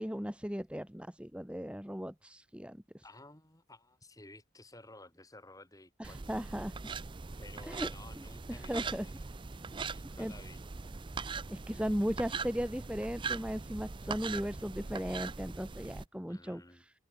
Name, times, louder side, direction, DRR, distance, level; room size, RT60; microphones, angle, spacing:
voice 1, 0.0-3.0 6.0-6.7 7.7-7.9 8.5-9.1 10.2-10.3 11.5-16.9, equal, 5° right, 1.4 m, -37 dB
voice 2, 3.0-6.4 7.4-9.3 9.7-10.6 16.3-16.8, left 2 dB, 15° left, 4.2 m, -54 dB
sound 1, 6.0-16.1, right 4 dB, 25° right, 0.4 m, -41 dB
head